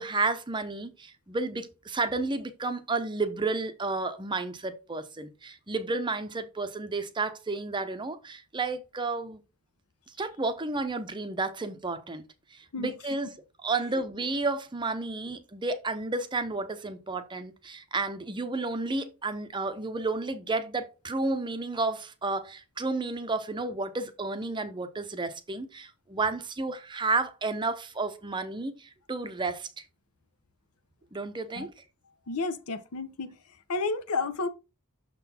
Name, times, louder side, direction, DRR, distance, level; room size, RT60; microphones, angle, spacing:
voice 1, 0.0-9.4 10.2-12.2 12.5-13.3 13.6-29.8 31.1-31.7, right 3 dB, 20° right, 0.6 m, -31 dB
voice 2, 32.3-33.3 33.7-34.5, left 3 dB, 80° left, 0.8 m, -31 dB
6.5 x 3.9 x 4.2 m
head